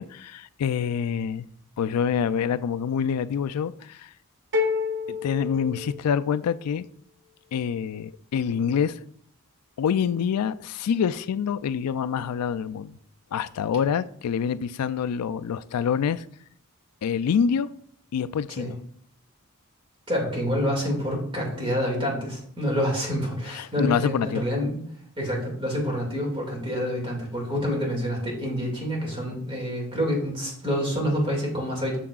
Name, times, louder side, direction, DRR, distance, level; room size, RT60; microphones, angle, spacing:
voice 1, 0.0-1.5 1.8-4.1 5.1-6.9 7.5-9.0 9.8-13.0 13.3-16.2 17.0-17.7 18.1-18.7 23.5-24.4, left 7 dB, 90° left, 0.3 m, -26 dB
sound 1, 4.5-6.5, left 5 dB, 55° right, 0.9 m, -29 dB
voice 2, 20.1-24.8 25.2-32.0, equal, 25° right, 2.1 m, -27 dB
7.3 x 6.8 x 2.4 m
head